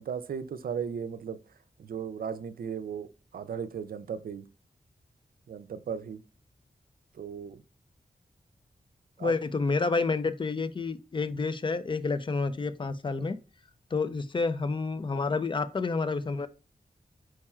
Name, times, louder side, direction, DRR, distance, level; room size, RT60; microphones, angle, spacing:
voice 1, 0.0-1.4 1.8-3.1 3.3-4.4 5.5-6.2 7.2-7.6 9.2-9.3, right 7 dB, 80° right, 0.4 m, -36 dB
voice 2, 9.2-13.4 13.9-16.5, left 4 dB, 35° left, 0.4 m, -29 dB
4.7 x 4.2 x 2.3 m
wide cardioid pair, 100°, 15 cm